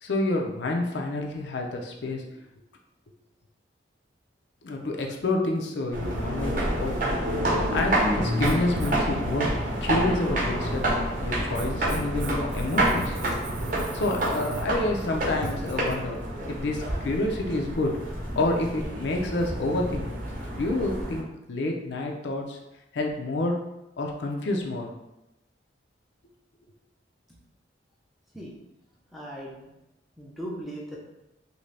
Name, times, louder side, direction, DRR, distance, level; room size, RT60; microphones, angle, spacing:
voice 1, 0.0-2.2 4.6-7.0 7.5-10.9 11.2-13.2 13.9-17.9 18.4-20.1 20.5-22.6 22.9-23.6 24.0-24.9, left 2 dB, 70° left, 1 dB, 0.5 m, -28 dB
sound 1, 5.9-21.2, right 1 dB, 45° right, 0.8 m, -28 dB
Writing, 8.3-15.9, right 2 dB, 75° right, 0.5 m, -39 dB
voice 2, 29.1-29.7 30.2-31.0, equal, ahead, -4 dB, 0.5 m, -38 dB
2.7 x 2.6 x 3.2 m, 0.92 s
head